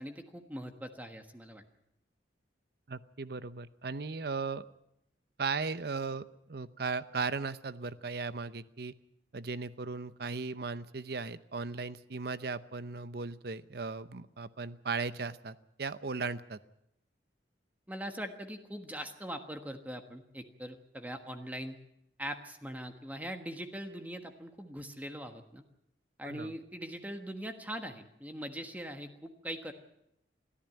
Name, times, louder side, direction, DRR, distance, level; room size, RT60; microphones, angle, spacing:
voice 1, 0.0-1.6 17.9-21.8 22.2-25.6 26.2-29.7, equal, 10° right, 6 dB, 1.4 m, -41 dB
voice 2, 2.9-4.7 5.4-6.2 6.5-8.9 9.3-16.6 26.2-26.5, right 4 dB, 60° right, 14 dB, 0.8 m, -37 dB
22.5 x 14.0 x 9.1 m, 0.82 s
head